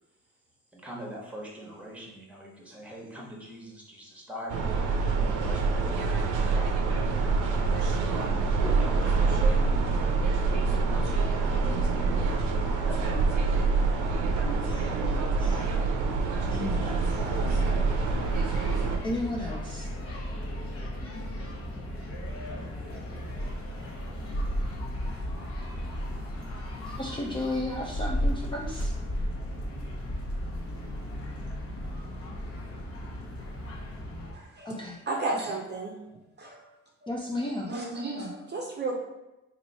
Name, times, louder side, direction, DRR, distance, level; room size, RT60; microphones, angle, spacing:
voice 1, 0.7-4.9 5.3-6.6 8.1-10.1 10.4-11.2 11.5-13.2 13.5-13.6, equal, 5° right, -2 dB, 1.1 m, -43 dB
sound 1, 4.5-19.0, right 4 dB, 80° right, 0.6 m, -26 dB
voice 2, 15.4-15.7 16.5-17.8 19.0-19.9 26.9-28.9 34.6-35.0 37.1-37.7, left 2 dB, 15° left, -3 dB, 0.4 m, -34 dB
sound 2, 17.0-34.3, equal, 50° left, 1.1 m, -35 dB
voice 3, 34.3-34.7 35.1-36.0 36.4-36.6 37.0-37.1 37.7-39.0, right 2 dB, 35° right, 0 dB, 0.6 m, -33 dB
3.0 x 2.7 x 4.1 m, 0.96 s
cardioid pair, 90°, 30 cm